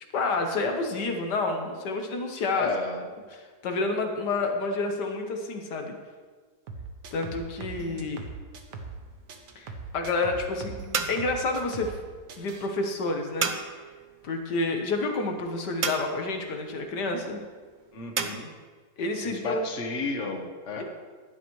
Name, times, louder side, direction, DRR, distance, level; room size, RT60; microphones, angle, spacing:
voice 1, 0.1-2.7 3.3-6.0 7.1-8.2 9.6-10.8 11.1-12.0 12.4-13.5 14.2-17.4 19.0-19.6, left 3 dB, 85° left, 4 dB, 1.8 m, -29 dB
voice 2, 2.5-3.0 17.9-18.5 19.2-20.8, left 4 dB, 45° left, 2 dB, 1.5 m, -32 dB
sound 1, 6.7-9.0 9.3-12.0 12.3-12.7, right 4 dB, 90° right, 1.7 m, -40 dB
sound 2, 8.7-18.3, right 5 dB, 50° right, 0.5 m, -36 dB
16.0 x 11.0 x 3.2 m, 1.5 s
omnidirectional pair, 1.8 m